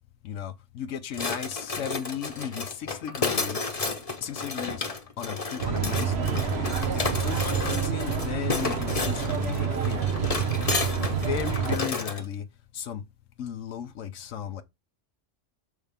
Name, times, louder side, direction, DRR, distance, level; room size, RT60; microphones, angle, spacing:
voice 1, 0.2-3.7 4.2-4.8 5.2-6.7 6.9-10.4 11.0-12.4 12.7-13.0 13.4-14.6, left 8 dB, 85° left, 1.1 m, -35 dB
sound 1, 1.1-12.2, left 4 dB, 30° left, 1.0 m, -32 dB
sound 2, 5.6-11.8, right 7 dB, 55° right, 1.3 m, -28 dB
6.4 x 6.4 x 3.5 m
omnidirectional pair, 1.3 m